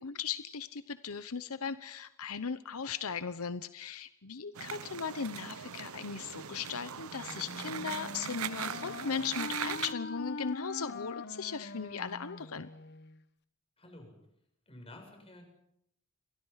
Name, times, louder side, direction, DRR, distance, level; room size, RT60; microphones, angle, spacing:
voice 1, 0.0-12.7, left 6 dB, 85° left, 13 dB, 1.0 m, -38 dB
sound 1, 4.5-9.9, right 8 dB, 75° right, 0.9 m, -40 dB
Wind instrument woodwind instrument, 7.1-13.2, left 3 dB, 50° left, 1.3 m, -43 dB
voice 2, 13.8-14.1 14.7-15.4, left 1 dB, 25° left, 3 dB, 7.8 m, -51 dB
30.0 x 23.0 x 5.8 m, 0.75 s
head